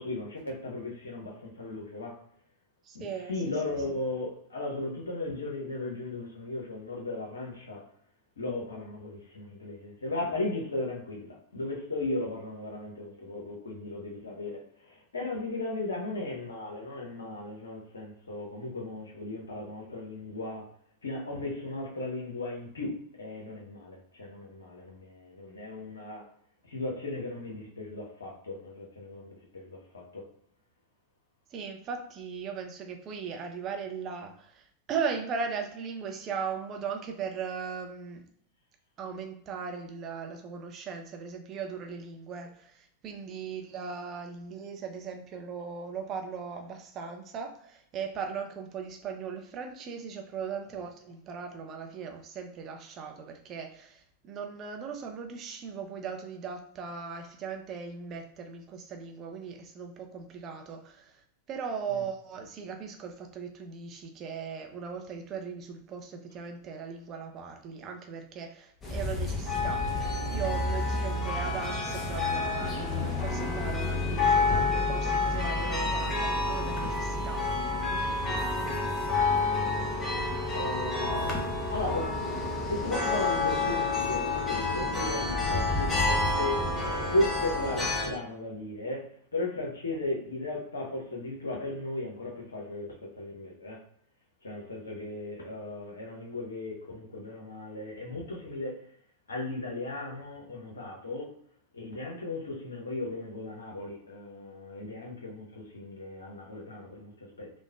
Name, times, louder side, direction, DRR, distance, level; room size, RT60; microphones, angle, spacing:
voice 1, 0.0-2.2 2.9-7.9 8.4-20.7 21.0-26.3 26.6-30.2 61.9-62.0 78.3-78.4 79.3-80.1 80.5-82.1 82.7-93.9 94.4-98.9 99.3-101.3 101.7-107.5, left 2 dB, 70° left, 0.7 m, -36 dB
voice 2, 2.8-3.3 31.5-38.3 39.0-61.2 61.5-77.6 78.1-78.3, right 6 dB, 30° right, 0.4 m, -38 dB
sound 1, 68.8-88.1, left 3 dB, 20° left, 0.6 m, -29 dB
3.2 x 2.1 x 2.2 m
figure-of-eight pair, 90°, 0 cm